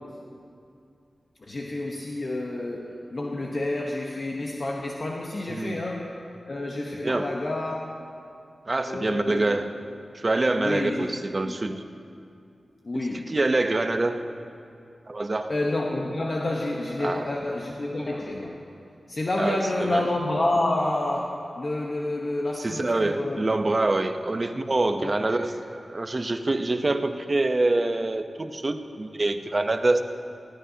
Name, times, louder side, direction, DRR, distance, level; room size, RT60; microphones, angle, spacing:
voice 1, 1.5-6.2 6.4-7.8 8.9-9.6 10.6-11.1 11.4-11.6 12.8-13.3 15.5-18.6 19.1-23.5 25.0-25.4, left 2 dB, 50° left, -1 dB, 1.0 m, -29 dB
voice 2, 7.0-7.3 8.7-9.7 10.1-11.8 12.9-14.3 15.1-15.5 17.0-17.3 19.4-20.0 22.6-30.0, right 2 dB, 40° right, 7 dB, 0.7 m, -26 dB
19.0 x 15.5 x 2.8 m, 2.5 s
wide cardioid pair, 80°, 0 cm